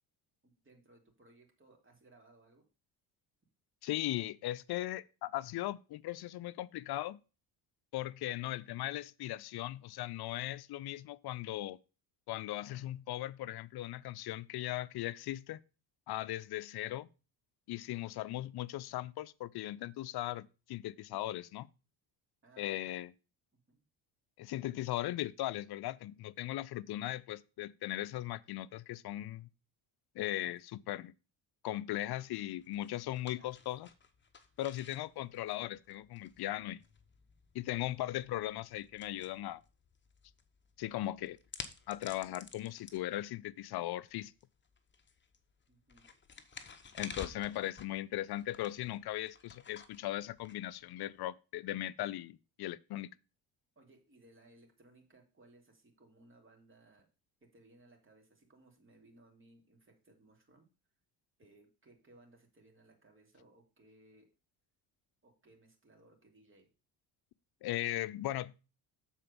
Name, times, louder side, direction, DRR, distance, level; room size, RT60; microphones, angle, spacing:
voice 1, 0.4-2.7 22.4-22.9 23.7-23.8 30.4-30.5 33.4-33.6 45.7-46.1 47.3-47.4 53.7-57.1 57.4-60.7 61.4-64.3 65.2-66.7, right 2 dB, 25° right, 2.8 m, -63 dB
voice 2, 3.8-7.2 7.9-11.8 12.3-15.6 16.1-17.1 17.7-21.7 22.6-23.1 24.4-29.5 30.1-31.1 31.6-33.9 34.6-36.8 37.5-39.6 40.8-41.4 41.9-44.3 46.9-53.1 67.6-68.5, left 15 dB, 55° left, 0.6 m, -38 dB
sound 1, 31.9-51.2, left 5 dB, 25° left, 1.0 m, -53 dB
7.4 x 4.4 x 6.8 m
cardioid pair, 90°, 45 cm